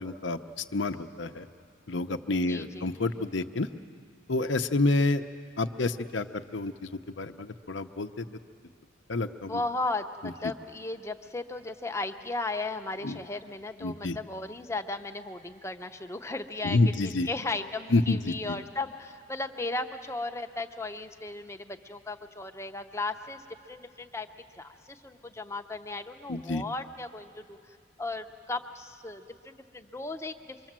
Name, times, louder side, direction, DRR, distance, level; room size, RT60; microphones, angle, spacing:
voice 1, 0.0-1.5 1.9-3.7 4.3-5.2 5.6-8.2 9.1-9.6 10.2-10.3 13.0-13.2 13.8-14.2 16.6-17.3 17.9-18.6 26.3-26.6, left 2 dB, 65° left, 9 dB, 0.8 m, -28 dB
voice 2, 2.5-2.9 8.3-8.4 9.5-23.4 23.7-24.3 24.5-27.6 28.0-30.7, left 2 dB, 15° left, 6 dB, 0.7 m, -36 dB
24.5 x 24.0 x 7.5 m, 2.2 s
head